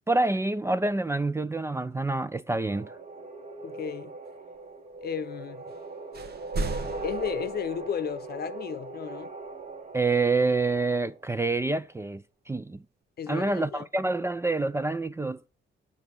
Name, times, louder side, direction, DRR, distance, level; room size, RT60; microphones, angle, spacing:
voice 1, 0.1-2.9 9.9-12.8 13.3-15.5, right 3 dB, 15° right, 0.4 m, -27 dB
sound 1, 2.7-11.3, right 3 dB, 35° right, 1.5 m, -40 dB
voice 2, 3.6-4.2 5.0-5.6 7.0-9.3 13.2-13.9, left 8 dB, 50° left, 0.8 m, -34 dB
sound 2, 5.7-5.9 6.1-8.2, right 2 dB, 55° right, 1.1 m, -35 dB
6.9 x 4.2 x 6.0 m
cardioid pair, 90°, 20 cm